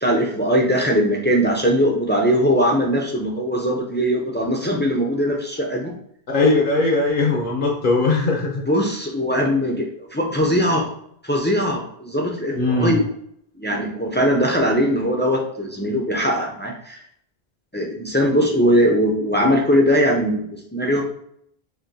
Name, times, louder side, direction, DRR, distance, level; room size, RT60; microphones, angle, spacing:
voice 1, 0.0-5.9 8.7-10.9 11.2-13.0 13.6-17.0 17.7-21.0, equal, 15° left, -1 dB, 0.3 m, -20 dB
voice 2, 6.3-8.6 12.5-12.9, left 3 dB, 60° left, 1 dB, 0.8 m, -19 dB
4.1 x 2.6 x 2.7 m, 0.68 s
omnidirectional pair, 1.0 m